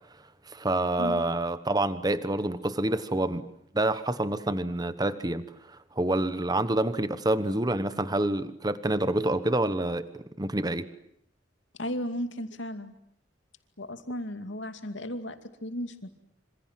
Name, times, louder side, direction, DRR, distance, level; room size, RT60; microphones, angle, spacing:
voice 1, 0.5-3.5 3.7-10.9, right 1 dB, 20° right, 13 dB, 1.2 m, -27 dB
voice 2, 11.8-12.9 13.8-16.2, equal, 70° left, 8 dB, 2.5 m, -35 dB
27.0 x 26.5 x 7.6 m, 0.72 s
head